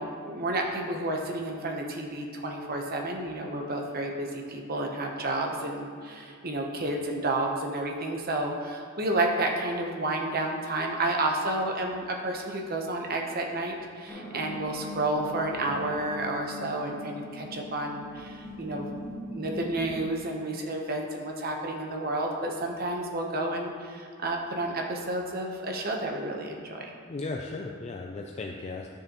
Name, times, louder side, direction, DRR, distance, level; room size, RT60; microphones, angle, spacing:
voice 1, 0.0-18.9 19.3-26.9, right 2 dB, 45° right, 1 dB, 0.9 m, -31 dB
sound 1, 14.1-20.0, left 1 dB, 10° left, 0.8 m, -41 dB
voice 2, 27.1-28.9, left 3 dB, 30° left, 1 dB, 0.4 m, -36 dB
10.5 x 6.5 x 3.0 m, 2.4 s
head